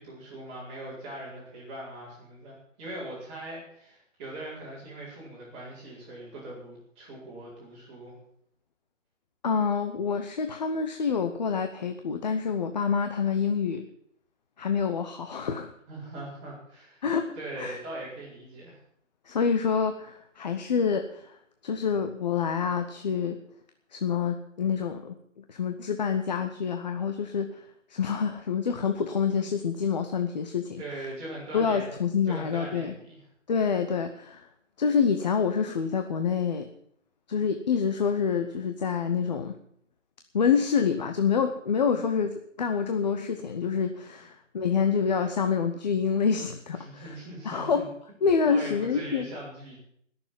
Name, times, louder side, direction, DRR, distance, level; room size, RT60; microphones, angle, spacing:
voice 1, 0.0-8.1 15.9-17.0 17.3-18.8 30.8-31.9 32.2-33.2 46.8-47.9 48.5-49.8, right 1 dB, 15° right, -7 dB, 4.5 m, -41 dB
voice 2, 9.4-13.9 14.6-15.7 17.0-17.8 19.3-21.4 21.6-23.4 23.9-30.8 31.5-33.0 33.5-34.5 34.8-36.7 37.3-39.6 40.3-47.1 47.4-47.9 48.2-49.3, left 6 dB, 35° left, 7 dB, 0.8 m, -27 dB
20.0 x 7.0 x 7.5 m, 0.69 s
hypercardioid pair, 160°, 37 cm